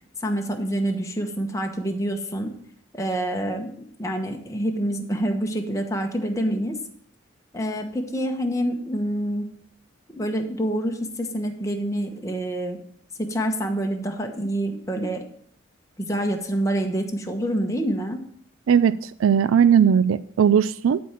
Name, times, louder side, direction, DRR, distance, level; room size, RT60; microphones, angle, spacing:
voice 1, 0.2-2.5 2.9-6.8 7.5-9.5 10.1-12.8 13.2-15.2 16.0-18.2, right 1 dB, 15° left, 3 dB, 1.1 m, -27 dB
voice 2, 18.7-21.0, right 7 dB, 85° right, 15 dB, 0.3 m, -18 dB
12.0 x 4.4 x 7.3 m, 0.64 s
head